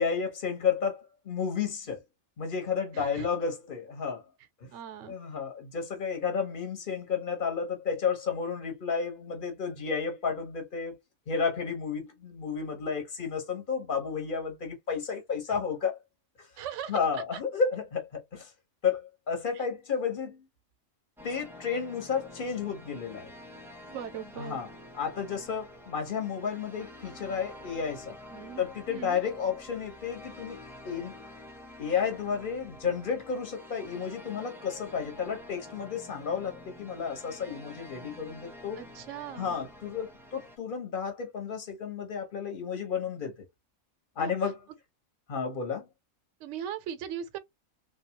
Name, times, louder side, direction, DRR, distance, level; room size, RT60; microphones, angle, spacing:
voice 1, 0.0-2.0 2.4-4.2 4.6-4.7 5.1-11.0 11.3-16.0 16.4-16.5 16.9-18.5 18.8-20.4 21.2-23.3 24.4-24.7 24.9-28.2 28.6-31.2 31.8-38.8 39.3-43.4 44.2-44.6 45.3-45.9, left 6 dB, 40° left, 1.4 m, -32 dB
voice 2, 2.9-3.3 4.7-5.2 16.6-17.4 19.5-19.6 23.9-24.6 28.3-28.6 28.9-29.2 38.8-39.6 44.2-44.3 46.4-47.4, right 9 dB, 65° right, 1.0 m, -39 dB
sound 1, 21.2-40.6, left 1 dB, ahead, 0.6 m, -48 dB
3.5 x 2.8 x 3.0 m
omnidirectional pair, 1.5 m